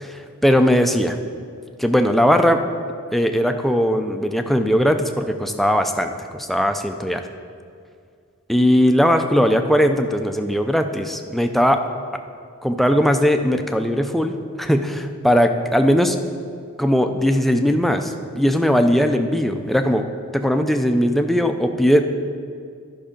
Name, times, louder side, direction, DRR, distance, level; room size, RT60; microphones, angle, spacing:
voice 1, 0.4-1.2 1.8-2.6 3.1-7.2 8.5-11.8 12.6-16.2 16.8-20.0 20.3-22.0, equal, ahead, 6 dB, 0.4 m, -19 dB
11.0 x 5.5 x 5.1 m, 2.2 s
head